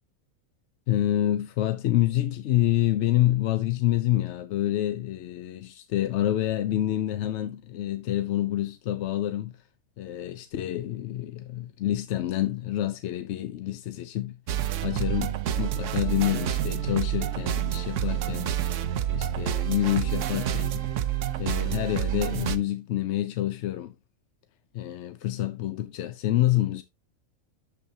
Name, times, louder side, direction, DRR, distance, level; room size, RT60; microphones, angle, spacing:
voice 1, 0.9-9.6 10.0-14.4 14.8-20.9 21.4-23.9 24.7-26.8, left 13 dB, 65° left, 0.8 m, -27 dB
sound 1, 14.5-22.6, right 11 dB, 70° right, 1.0 m, -28 dB
8.3 x 6.9 x 2.7 m
omnidirectional pair, 1.4 m